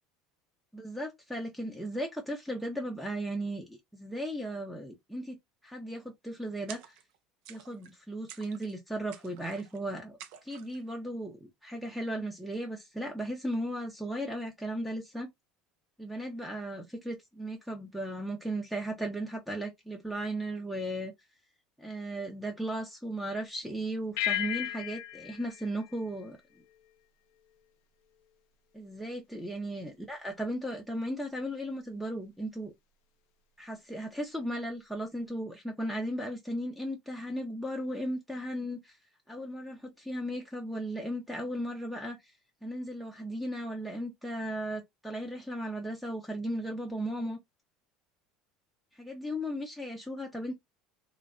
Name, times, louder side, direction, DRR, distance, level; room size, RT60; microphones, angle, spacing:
voice 1, 0.7-5.4 5.6-7.0 7.5-15.3 16.0-21.1 21.8-26.4 28.7-32.7 33.6-39.0 39.3-42.3 42.6-47.4 48.9-50.5, right 1 dB, 5° right, 0.6 m, -36 dB
sound 1, 6.7-7.2 7.4-8.0 8.3-8.8 9.1-9.8 10.2-10.8, right 10 dB, 70° right, 0.4 m, -50 dB
sound 2, 24.2-26.9, left 12 dB, 75° left, 0.3 m, -36 dB
2.5 x 2.0 x 2.4 m
supercardioid pair, 100°, 0 cm